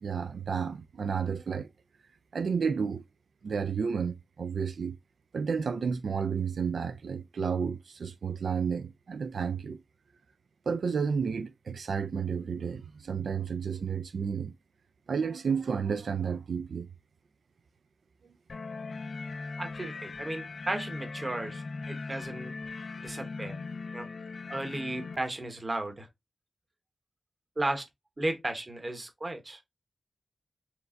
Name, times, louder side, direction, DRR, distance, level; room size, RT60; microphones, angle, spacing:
voice 1, 0.0-1.7 2.3-3.0 3.4-5.0 5.3-9.8 10.7-14.5 15.1-16.9, right 6 dB, 85° right, 0.3 m, -31 dB
sound 1, 18.5-25.2, left 4 dB, 55° left, 0.3 m, -39 dB
voice 2, 19.6-22.5 23.0-23.6 23.9-24.1 24.5-26.1 27.6-27.9 28.2-29.6, right 2 dB, 25° right, 0.9 m, -34 dB
4.5 x 3.2 x 2.5 m
wide cardioid pair, 145°, 0 cm